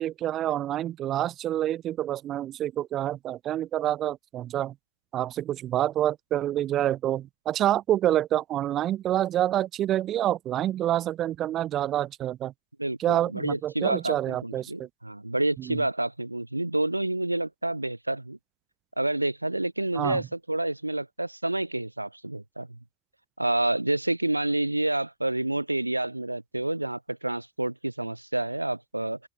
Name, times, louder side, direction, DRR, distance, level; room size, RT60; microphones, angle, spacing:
voice 1, 0.0-4.7 5.1-12.5 13.0-14.9 15.7-15.8 20.0-20.2, right 12 dB, 30° right, 0.4 m, -27 dB
voice 2, 12.8-18.4 19.0-22.8 23.4-29.2, right 2 dB, 85° right, 0.5 m, -29 dB
open air
figure-of-eight pair, 90°, 0 cm